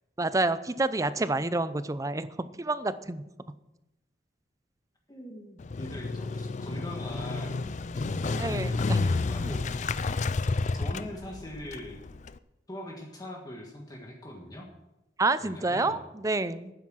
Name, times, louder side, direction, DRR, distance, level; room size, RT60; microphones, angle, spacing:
voice 1, 0.2-2.3 2.6-3.2 8.4-9.0 15.2-16.7, right 2 dB, 20° right, 14 dB, 0.6 m, -28 dB
voice 2, 5.1-9.8 10.7-12.1 12.7-14.7 15.4-16.0, left 1 dB, 20° left, 0 dB, 1.6 m, -42 dB
Motorcycle, 5.6-12.4, left 3 dB, 40° left, 0.4 m, -30 dB
12.0 x 9.6 x 6.3 m, 0.94 s
head